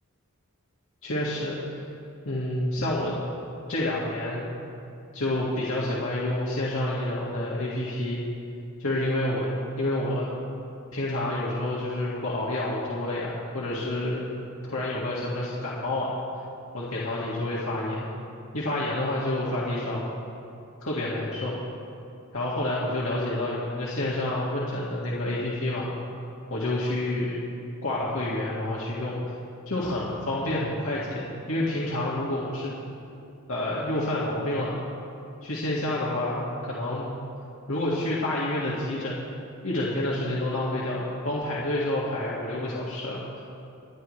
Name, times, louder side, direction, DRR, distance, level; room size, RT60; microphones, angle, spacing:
voice 1, 1.0-1.8 2.3-3.2 3.7-4.5 5.1-8.2 8.8-9.5 9.8-10.3 10.9-14.3 14.6-16.2 16.7-18.1 18.5-20.0 20.8-21.6 22.3-25.9 26.5-27.4 27.8-29.2 29.7-32.7 33.5-34.8 35.4-37.1 37.7-39.2 39.6-43.2, left 1 dB, 70° left, -6 dB, 1.9 m, -28 dB
27.0 x 10.5 x 3.2 m, 2.6 s
head